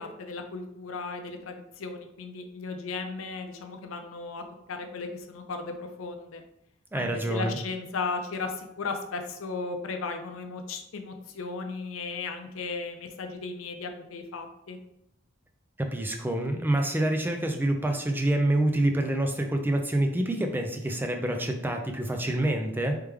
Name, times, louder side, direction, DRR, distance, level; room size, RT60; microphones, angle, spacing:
voice 1, 0.0-6.4 6.9-14.8, left 4 dB, 90° left, 6 dB, 0.5 m, -36 dB
voice 2, 6.9-7.6 15.8-23.0, right 1 dB, 10° right, 4 dB, 0.4 m, -27 dB
3.4 x 3.2 x 3.3 m, 0.80 s
head